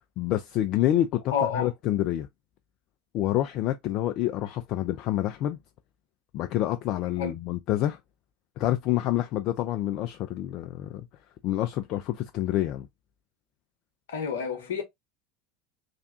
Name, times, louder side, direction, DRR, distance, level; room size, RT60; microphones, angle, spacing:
voice 1, 0.2-1.2 1.5-2.3 3.1-5.6 6.3-8.0 8.6-11.0 11.4-12.9, left 13 dB, 50° left, 0.3 m, -27 dB
voice 2, 1.3-1.7 7.2-7.3 14.1-14.8, left 6 dB, 65° left, 0.9 m, -29 dB
3.4 x 2.5 x 2.6 m
figure-of-eight pair, 75°, 0 cm